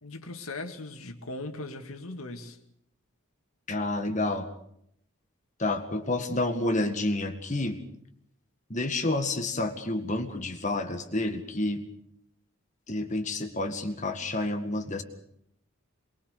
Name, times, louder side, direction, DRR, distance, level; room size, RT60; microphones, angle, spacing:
voice 1, 0.0-2.6, left 2 dB, 80° left, 7 dB, 2.2 m, -39 dB
voice 2, 3.7-4.5 5.6-7.8 8.7-11.8 12.9-15.0, left 2 dB, 35° left, 7 dB, 1.9 m, -29 dB
23.5 x 22.0 x 6.7 m, 0.71 s
head